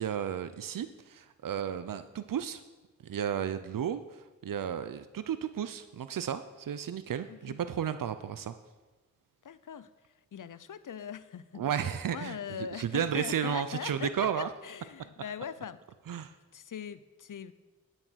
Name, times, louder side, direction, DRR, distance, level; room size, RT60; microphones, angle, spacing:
voice 1, 0.0-2.6 3.0-8.5 11.5-14.5 16.1-16.3, right 8 dB, 85° right, 11 dB, 0.5 m, -33 dB
voice 2, 7.3-7.6 9.4-11.6 12.1-15.8 16.5-17.5, left 8 dB, 75° left, 15 dB, 0.6 m, -41 dB
10.5 x 7.4 x 6.2 m, 1.2 s
wide cardioid pair, 75°, 32 cm